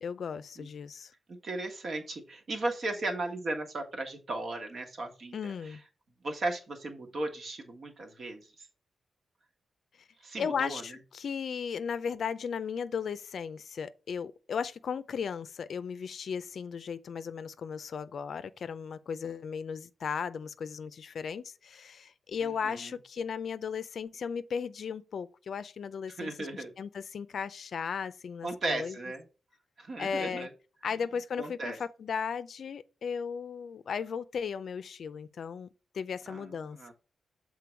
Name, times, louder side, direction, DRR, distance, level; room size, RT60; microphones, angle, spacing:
voice 1, 0.0-1.1 5.3-5.8 10.4-29.0 30.0-30.5 30.8-35.7 35.9-36.9, left 6 dB, 60° left, 0.5 m, -36 dB
voice 2, 1.4-5.5 6.2-8.4 10.2-10.8 22.4-22.9 26.2-26.7 28.4-29.3 29.8-30.5 31.4-31.8 36.3-36.9, right 2 dB, 50° right, 1.5 m, -36 dB
6.9 x 3.8 x 4.6 m
wide cardioid pair, 115°, 0 cm